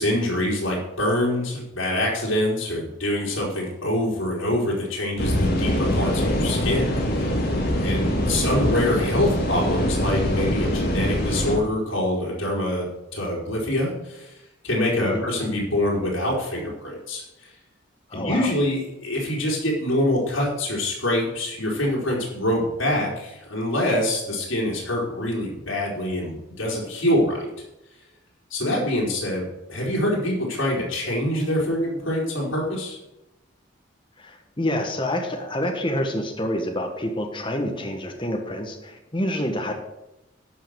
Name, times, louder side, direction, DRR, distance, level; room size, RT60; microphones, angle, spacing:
voice 1, 0.0-7.3 7.8-12.9 13.1-14.3 14.6-17.2 18.1-27.5 28.5-33.0, left 1 dB, 80° left, -4 dB, 4.3 m, -25 dB
sound 1, 5.2-11.6, equal, 55° left, 2.3 m, -23 dB
voice 2, 15.0-15.3 18.1-18.5 34.2-39.7, left 1 dB, 25° left, 3 dB, 1.5 m, -27 dB
12.5 x 5.8 x 7.9 m, 0.91 s
head